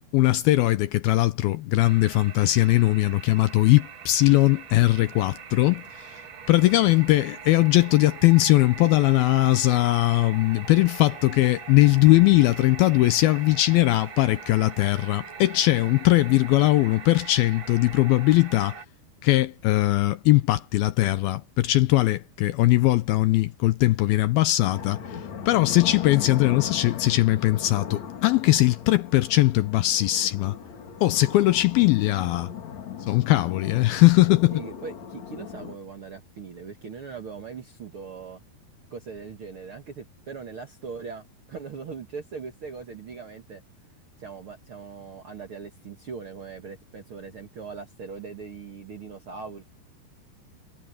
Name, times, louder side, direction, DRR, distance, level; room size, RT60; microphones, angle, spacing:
voice 1, 0.1-6.2 6.5-18.8 19.2-25.2 25.5-30.6 31.0-32.5 33.0-34.6, left 17 dB, 80° left, 2.3 m, -20 dB
sound 1, 1.8-18.8, right 6 dB, 75° right, 1.1 m, -42 dB
sound 2, 24.6-35.8, left 8 dB, 50° left, 3.0 m, -37 dB
voice 2, 34.5-38.4 38.9-43.6 44.2-49.6, right 5 dB, 50° right, 1.6 m, -40 dB
omnidirectional pair, 4.8 m